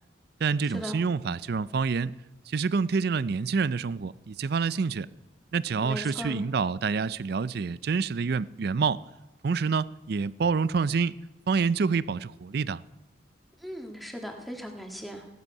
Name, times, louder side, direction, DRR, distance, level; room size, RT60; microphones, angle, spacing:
voice 1, 0.4-2.2 2.5-5.1 5.5-9.0 9.4-11.2 11.5-12.8, right 5 dB, 55° right, 0.4 m, -27 dB
voice 2, 5.8-6.4 13.6-15.3, equal, ahead, 1.7 m, -37 dB
17.0 x 12.0 x 5.5 m
head